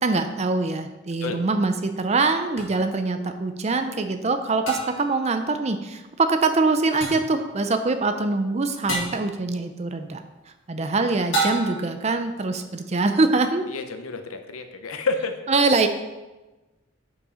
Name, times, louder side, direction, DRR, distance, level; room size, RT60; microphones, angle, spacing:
voice 1, 0.0-10.2 10.7-13.7 15.5-15.9, right 3 dB, 30° right, 8 dB, 0.5 m, -23 dB
sound 1, 2.6-2.7 4.7-5.2 7.0-7.4 8.9-9.3 11.3-12.0, right 2 dB, 60° left, 1.9 m, -27 dB
voice 2, 13.7-15.4, left 3 dB, 80° left, 7 dB, 0.8 m, -29 dB
7.0 x 5.4 x 5.0 m, 1.1 s
head